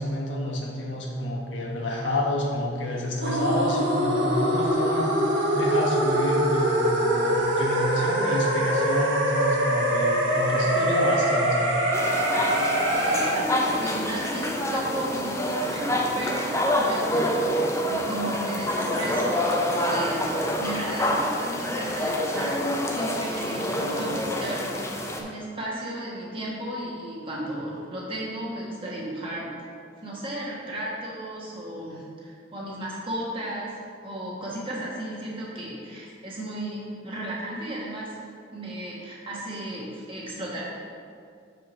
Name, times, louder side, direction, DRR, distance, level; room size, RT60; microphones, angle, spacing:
voice 1, 0.0-5.1 5.5-11.7, left 1 dB, 80° left, -2 dB, 1.2 m, -29 dB
sound 1, 3.2-13.3, right 1 dB, 80° right, 1.0 m, -24 dB
sound 2, 11.9-25.2, left 1 dB, 15° left, 0.5 m, -27 dB
voice 2, 13.0-17.6 17.8-24.7 25.1-29.5 30.0-33.7 34.0-38.2 38.5-40.7, right 1 dB, 30° right, -6 dB, 1.5 m, -34 dB
4.9 x 4.7 x 6.0 m, 2.4 s
head